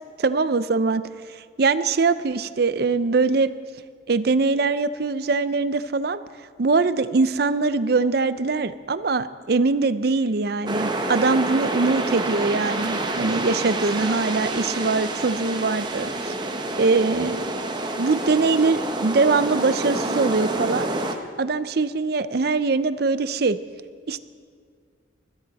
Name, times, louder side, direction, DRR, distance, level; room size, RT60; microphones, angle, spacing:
voice 1, 0.2-1.0 1.3-3.5 4.1-6.2 6.6-16.3 16.8-17.4 18.0-20.9 21.4-23.6 24.1-24.2, right 4 dB, 55° right, 13 dB, 0.5 m, -22 dB
sound 1, 10.7-21.1, right 2 dB, 25° right, 0.9 m, -28 dB
20.5 x 13.0 x 4.1 m, 2.1 s
head